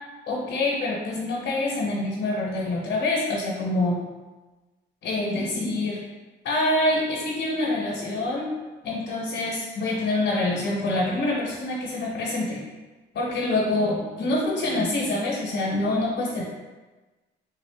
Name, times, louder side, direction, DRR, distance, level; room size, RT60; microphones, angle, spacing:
voice 1, 0.3-4.0 5.0-6.0 6.4-8.5 8.8-12.6 13.1-16.4, left 2 dB, 65° left, -4 dB, 0.9 m, -26 dB
3.7 x 2.4 x 3.4 m, 1.2 s
cardioid pair, 90°, 20 cm